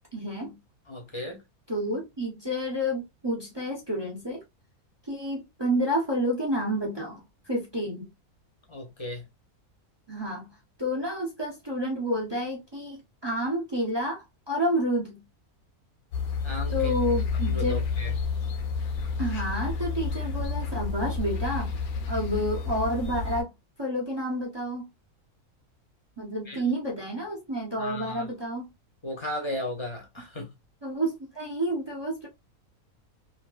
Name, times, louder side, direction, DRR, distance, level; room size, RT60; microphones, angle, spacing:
voice 1, 0.1-0.6 1.7-4.4 5.0-8.0 10.1-10.5 10.8-15.2 16.7-17.8 19.2-21.7 22.1-23.5 23.8-24.8 26.2-28.7 30.8-32.3, equal, 30° right, 0.5 m, -29 dB
voice 2, 0.9-1.4 8.7-9.2 16.4-16.9 17.4-18.1 26.5-26.6 27.8-28.2 29.0-30.5, left 1 dB, 25° left, 0.7 m, -35 dB
sound 1, 16.1-23.4, left 5 dB, 75° left, 1.2 m, -30 dB
3.1 x 2.7 x 2.3 m
omnidirectional pair, 1.6 m